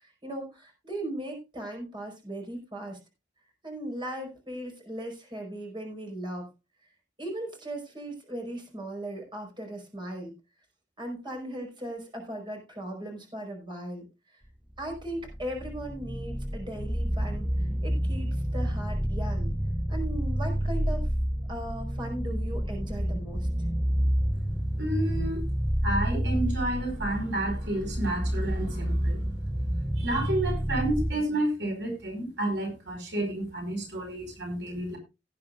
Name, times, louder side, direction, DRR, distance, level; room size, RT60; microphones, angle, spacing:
voice 1, 0.0-3.0 3.6-6.5 7.2-10.3 11.0-14.0 14.8-19.5 19.9-21.1 21.5-23.5, right 1 dB, 25° right, 2 dB, 5.0 m, -38 dB
sound 1, 14.8-31.1, equal, 5° right, 0.5 m, -29 dB
voice 2, 24.8-25.4 25.8-29.2 30.0-35.0, right 1 dB, 70° right, 2 dB, 5.0 m, -30 dB
18.0 x 9.5 x 2.5 m, 0.26 s
head